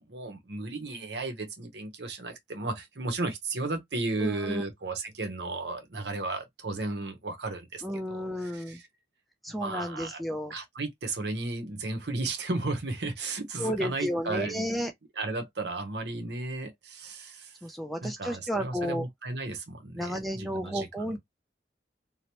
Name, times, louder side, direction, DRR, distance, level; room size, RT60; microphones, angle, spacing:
voice 1, 0.1-8.9 9.6-10.2 10.5-14.9 15.2-17.5 18.0-21.2, right 2 dB, 70° right, 0.8 m, -34 dB
voice 2, 4.2-4.6 7.8-8.8 9.4-10.5 13.6-14.9 17.6-19.0 20.0-21.2, equal, ahead, 0.4 m, -32 dB
2.9 x 2.0 x 2.9 m
head